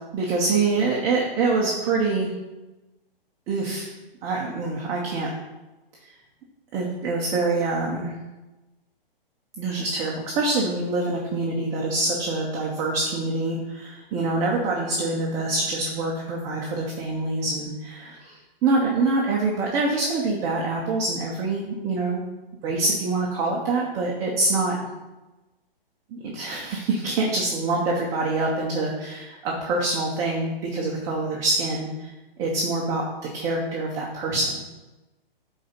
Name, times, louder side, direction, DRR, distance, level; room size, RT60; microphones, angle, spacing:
voice 1, 0.1-2.3 3.5-3.9 4.2-5.3 6.7-8.1 9.6-22.2 22.6-24.8 26.1-32.1 32.4-33.0 33.3-34.6, right 3 dB, 10° right, -2 dB, 0.5 m, -25 dB
8.2 x 3.9 x 5.0 m, 1.1 s
hypercardioid pair, 155°, 30 cm